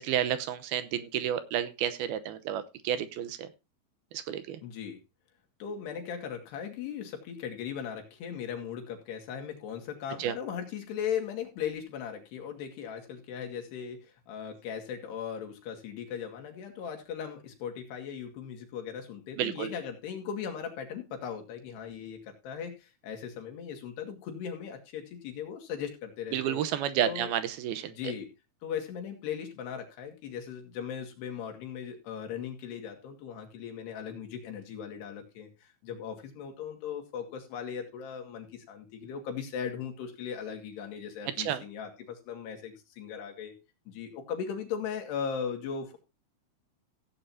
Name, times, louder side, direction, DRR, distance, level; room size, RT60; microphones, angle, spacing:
voice 1, 0.0-3.5 4.1-4.6 10.2-10.3 19.4-19.7 26.3-28.1 41.4-41.6, right 10 dB, 80° right, 12 dB, 2.6 m, -31 dB
voice 2, 4.6-5.0 5.6-26.6 27.0-27.3 27.8-28.3 28.6-43.5 43.9-46.0, left 7 dB, 85° left, 4 dB, 4.1 m, -38 dB
16.0 x 8.9 x 2.8 m, 0.28 s
omnidirectional pair, 4.6 m